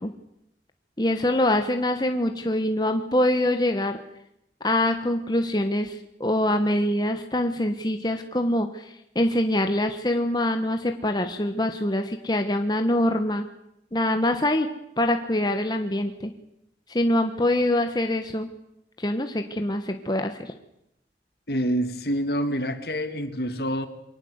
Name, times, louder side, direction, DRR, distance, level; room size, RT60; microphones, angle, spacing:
voice 1, 1.0-4.0 4.6-13.4 13.9-14.7 15.0-16.3 16.9-18.5 19.0-20.5, left 1 dB, 25° left, 6 dB, 1.3 m, -24 dB
voice 2, 21.5-23.9, equal, 60° left, 9 dB, 2.3 m, -27 dB
23.5 x 19.0 x 8.2 m, 0.81 s
head